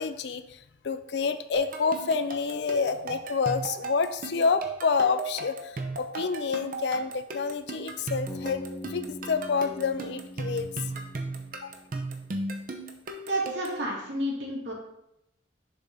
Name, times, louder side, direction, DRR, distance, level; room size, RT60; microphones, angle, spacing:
voice 1, 0.0-8.6 8.9-10.7 11.6-11.8, left 5 dB, 70° left, 11 dB, 0.4 m, -28 dB
sound 1, 1.5-13.8, right 3 dB, 50° right, 0.7 m, -36 dB
Bass guitar, 8.3-12.4, left 1 dB, 10° left, 0.9 m, -42 dB
voice 2, 13.3-14.7, right 1 dB, 75° right, -4 dB, 2.3 m, -30 dB
6.8 x 4.2 x 3.7 m, 0.79 s
head